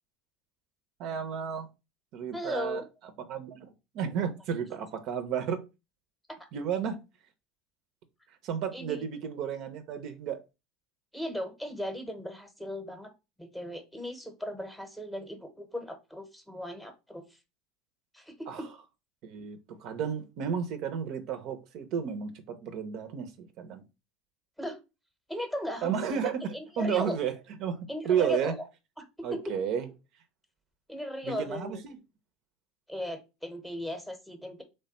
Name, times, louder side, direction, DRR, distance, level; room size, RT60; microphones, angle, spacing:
voice 1, 1.0-1.7 2.1-2.8 3.3-5.6 6.5-7.0 8.4-10.4 18.5-18.6 19.2-23.8 25.8-27.3 27.6-27.8 28.0-28.6 29.2-29.9 31.2-32.0, right 7 dB, 60° right, 0.6 m, -32 dB
voice 2, 2.3-2.8 6.3-6.4 8.7-9.0 11.1-13.1 13.4-17.4 18.1-18.7 24.6-24.8 25.3-26.2 26.5-27.2 27.9-28.5 29.0-29.6 30.9-31.8 32.9-34.6, left 1 dB, 5° left, 0.8 m, -37 dB
3.2 x 2.2 x 4.0 m
supercardioid pair, 95°, 0 cm